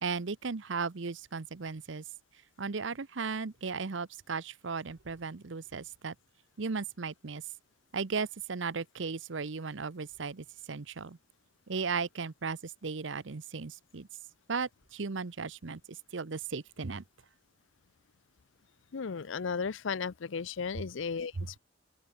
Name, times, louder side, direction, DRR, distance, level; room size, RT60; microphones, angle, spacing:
voice 1, 0.0-2.0 2.6-6.1 6.6-7.4 7.9-11.2 11.7-14.1 14.5-17.0 21.4-21.5, right 4 dB, 70° right, 0.8 m, -36 dB
voice 2, 18.9-21.6, left 5 dB, 70° left, 0.6 m, -35 dB
open air
head